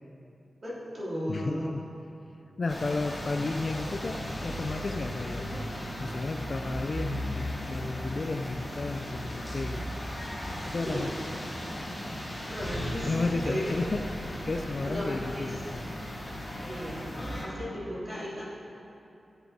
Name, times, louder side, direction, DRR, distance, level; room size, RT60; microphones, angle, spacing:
voice 1, 0.6-1.7 5.4-5.6 10.8-11.0 12.5-13.7 14.8-15.6 16.7-17.1 17.4-18.4, equal, 35° right, -8 dB, 3.2 m, -35 dB
voice 2, 1.3-1.8 2.6-5.4 6.0-9.8 10.7-11.1 13.0-15.8, left 3 dB, 40° left, 5 dB, 0.5 m, -33 dB
sound 1, 2.7-17.4, equal, 10° left, 2.2 m, -36 dB
17.0 x 7.3 x 4.5 m, 2.8 s
wide cardioid pair, 155°, 0 cm